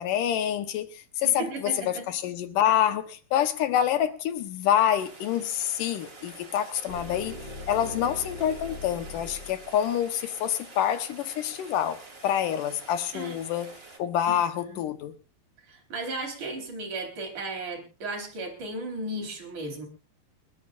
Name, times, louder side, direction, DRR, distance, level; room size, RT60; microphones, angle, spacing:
voice 1, 0.0-7.4 7.7-13.7 14.0-15.2, left 10 dB, 70° left, 2.6 m, -27 dB
voice 2, 1.2-2.0 13.1-13.4 14.3-14.4 14.6-14.8 15.7-19.9, right 2 dB, 55° right, 5.3 m, -35 dB
Rain, 5.0-14.0, right 3 dB, 20° right, 1.9 m, -47 dB
sound 1, 6.9-10.8, left 3 dB, 25° left, 5.3 m, -41 dB
29.5 x 11.5 x 2.5 m
omnidirectional pair, 4.1 m